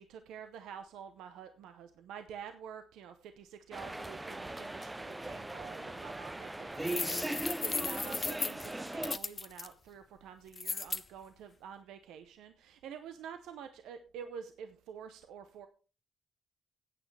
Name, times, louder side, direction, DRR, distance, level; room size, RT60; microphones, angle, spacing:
voice 1, 0.0-15.7, right 7 dB, 85° right, 8 dB, 0.8 m, -48 dB
sound 1, 3.7-9.2, right 1 dB, 15° right, 0.6 m, -39 dB
sound 2, 6.8-9.7 10.5-11.0, left 5 dB, 45° left, 0.7 m, -36 dB
15.0 x 8.5 x 3.4 m, 0.35 s
supercardioid pair, 60°, 0 cm